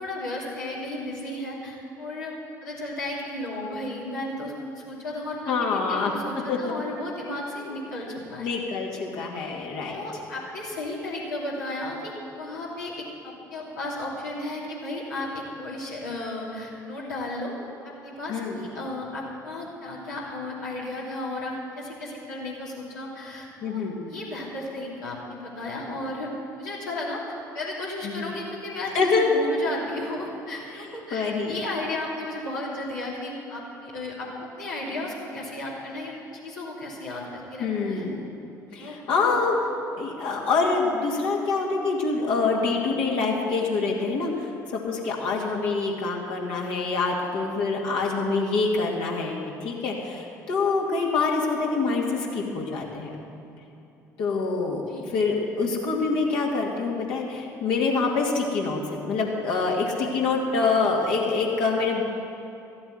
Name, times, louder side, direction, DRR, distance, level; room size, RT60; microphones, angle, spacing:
voice 1, 0.0-2.3 2.6-8.5 9.9-17.5 17.8-26.3 26.6-36.1 36.4-38.0 38.8-39.4 54.9-55.0, left 1 dB, 80° left, -5 dB, 2.9 m, -34 dB
voice 2, 5.5-6.1 6.5-6.6 8.4-10.0 18.3-18.6 23.6-24.0 28.0-28.3 28.9-29.3 31.1-31.6 37.6-38.2 38.7-39.5 40.0-53.1 54.2-54.8 55.1-62.0, left 4 dB, 60° left, -2 dB, 2.3 m, -26 dB
14.0 x 8.7 x 8.0 m, 2.8 s
figure-of-eight pair, 55°, 10 cm